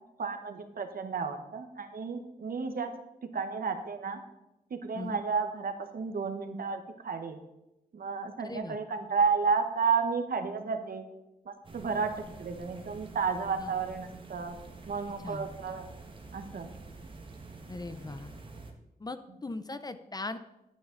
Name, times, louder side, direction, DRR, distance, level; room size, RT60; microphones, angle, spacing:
voice 1, 0.2-2.9 3.3-4.2 4.7-7.4 7.9-11.0 11.4-12.1 12.4-14.6 14.8-15.9 16.3-16.7, right 5 dB, 70° right, 6 dB, 1.2 m, -32 dB
voice 2, 8.4-8.8 13.6-13.7 15.2-15.5 17.7-18.3 19.0-20.4, left 2 dB, 25° left, 11 dB, 0.5 m, -39 dB
sound 1, 11.6-18.7, right 3 dB, 35° right, 1.4 m, -48 dB
11.5 x 8.8 x 3.9 m, 0.93 s
wide cardioid pair, 145°, 16 cm